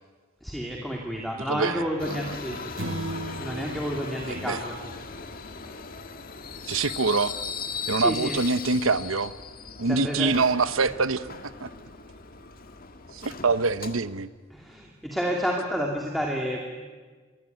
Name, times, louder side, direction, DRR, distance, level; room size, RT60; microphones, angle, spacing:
voice 1, 0.4-2.6 3.4-4.7 8.0-8.4 9.9-10.3 14.5-16.7, equal, ahead, -1 dB, 2.6 m, -30 dB
voice 2, 1.5-2.6 4.2-4.6 6.7-7.3 7.9-9.3 9.8-11.7 13.1-14.3, right 4 dB, 80° right, 14 dB, 0.9 m, -25 dB
Subway metro underground, 2.0-14.0, left 5 dB, 45° left, 1.8 m, -38 dB
sound 1, 2.8-5.4, right 1 dB, 65° right, 1.5 m, -37 dB
27.5 x 22.5 x 9.4 m, 1.4 s
head